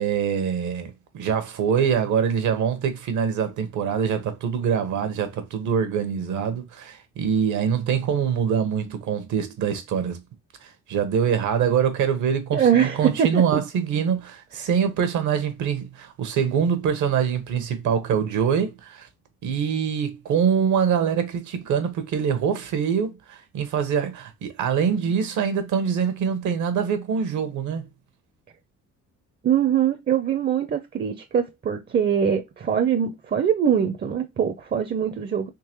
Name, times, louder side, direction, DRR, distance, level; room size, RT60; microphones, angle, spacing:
voice 1, 0.0-10.2 10.6-19.1 19.4-27.8, right 7 dB, 75° right, 0.9 m, -24 dB
voice 2, 12.5-13.4 29.4-35.5, right 8 dB, 35° right, 0.5 m, -22 dB
3.7 x 2.9 x 2.9 m
cardioid pair, 90°, 30 cm